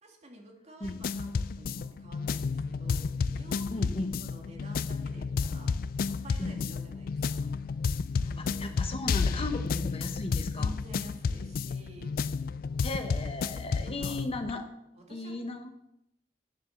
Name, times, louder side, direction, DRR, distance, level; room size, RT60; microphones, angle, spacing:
voice 1, 0.0-5.7 6.0-7.5 8.1-8.7 9.6-9.8 10.5-12.2 13.9-14.2 14.9-15.3, right 1 dB, 40° right, 1 dB, 2.2 m, -50 dB
sound 1, 0.8-14.5, left 5 dB, 55° left, 0.3 m, -31 dB
voice 2, 3.7-4.2 6.4-6.7 8.4-10.7 12.8-14.7 15.1-15.7, left 2 dB, 35° left, 6 dB, 1.1 m, -36 dB
9.8 x 7.2 x 6.6 m, 0.84 s
head